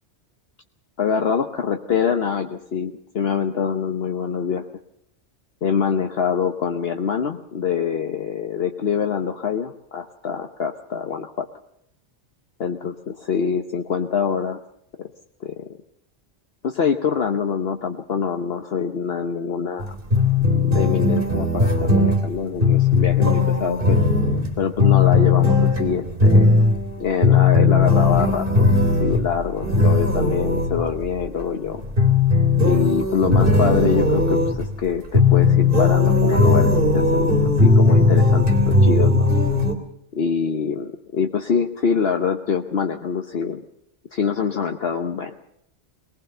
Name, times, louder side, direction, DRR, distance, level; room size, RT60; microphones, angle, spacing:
voice 1, 1.0-4.6 5.6-11.5 12.6-14.6 15.0-15.1 15.4-15.7 16.6-20.0 20.4-24.0 24.6-26.6 27.0-28.7 29.0-31.8 32.6-39.3 40.1-43.6 44.1-45.4, left 6 dB, 60° left, 5 dB, 1.2 m, -25 dB
sound 1, 19.8-31.3 31.8-34.8 35.1-39.7, left 3 dB, 50° right, 3.1 m, -17 dB
22.0 x 19.0 x 6.7 m, 0.76 s
omnidirectional pair, 1.2 m